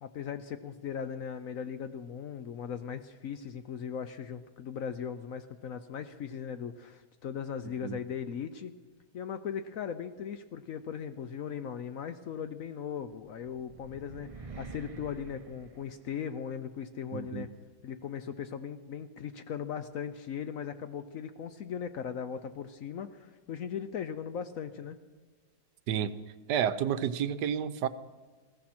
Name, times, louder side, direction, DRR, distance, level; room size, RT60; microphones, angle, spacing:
voice 1, 0.0-8.7 9.1-17.5 17.8-25.0, left 7 dB, 65° left, 11 dB, 0.9 m, -38 dB
sound 1, 13.1-16.5, right 4 dB, 40° right, 0.4 m, -47 dB
voice 2, 17.1-17.5 25.9-26.1 26.5-27.9, right 9 dB, 75° right, 13 dB, 1.3 m, -30 dB
20.5 x 15.5 x 4.3 m, 1.4 s
omnidirectional pair, 1.9 m